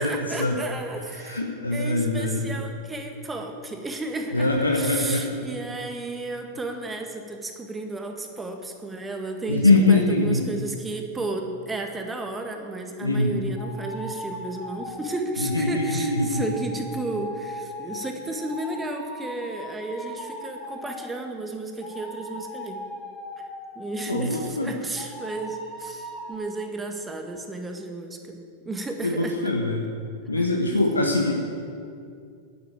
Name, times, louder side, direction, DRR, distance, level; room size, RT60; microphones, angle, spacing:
voice 1, 0.0-1.4 1.7-22.8 23.8-28.4 28.7-29.4 30.4-30.5, right 2 dB, 10° right, 4 dB, 1.8 m, -33 dB
voice 2, 1.2-2.4 4.3-5.3 9.5-10.4 13.0-13.4 15.4-16.5 24.1-24.7 29.0-29.8 30.3-31.3, left 2 dB, 80° left, 1 dB, 1.3 m, -23 dB
sound 1, 13.6-21.2 21.8-24.5 25.0-26.3, left 1 dB, 25° left, 3.2 m, -39 dB
11.5 x 10.0 x 9.1 m, 2.4 s
figure-of-eight pair, 90°, 0 cm